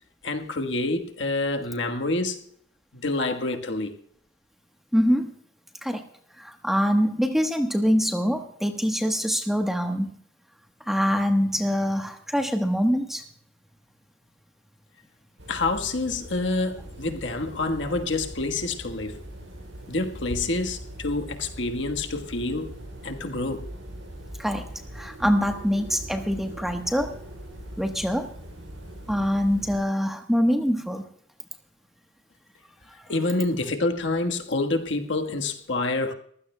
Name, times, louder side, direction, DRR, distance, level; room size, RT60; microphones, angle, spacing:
voice 1, 0.2-2.4 2.9-3.9 15.5-19.2 19.9-22.7 23.0-23.7 33.1-36.1, left 2 dB, 70° left, 1.3 m, -27 dB
voice 2, 4.9-5.3 5.8-6.0 6.4-10.2 10.9-13.3 24.4-24.7 24.9-27.2 27.8-28.3 29.1-31.1, equal, ahead, 1.1 m, -24 dB
sound 1, 15.4-29.8, equal, 80° right, 6.5 m, -41 dB
23.5 x 15.5 x 2.2 m
head